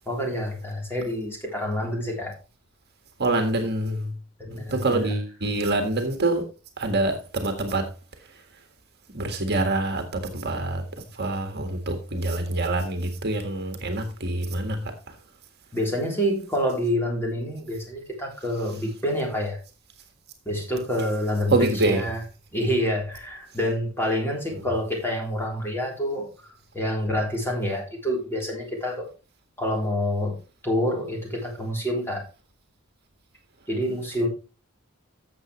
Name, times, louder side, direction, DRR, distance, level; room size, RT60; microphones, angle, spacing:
voice 1, 0.0-2.4 4.4-5.1 15.7-19.6 20.4-22.2 22.5-29.1 29.6-30.4 30.6-32.3 33.7-34.3, equal, 10° left, 3.3 m, -27 dB
voice 2, 3.2-4.1 4.5-6.4 6.8-7.9 9.1-10.8 11.1-14.9 21.5-22.0, right 2 dB, 50° right, 1.7 m, -25 dB
13.0 x 7.6 x 3.1 m
head